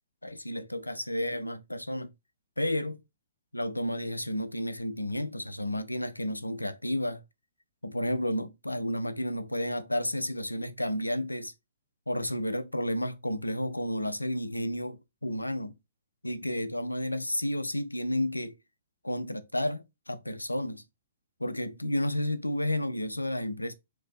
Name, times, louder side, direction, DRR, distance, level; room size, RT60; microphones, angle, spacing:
voice 1, 0.2-2.1 2.6-3.0 3.5-7.2 7.8-11.5 12.1-15.8 16.2-18.6 19.0-20.8 21.4-23.7, left 1 dB, 90° left, 0.4 m, -31 dB
2.8 x 2.6 x 3.7 m
figure-of-eight pair, 115°, 0 cm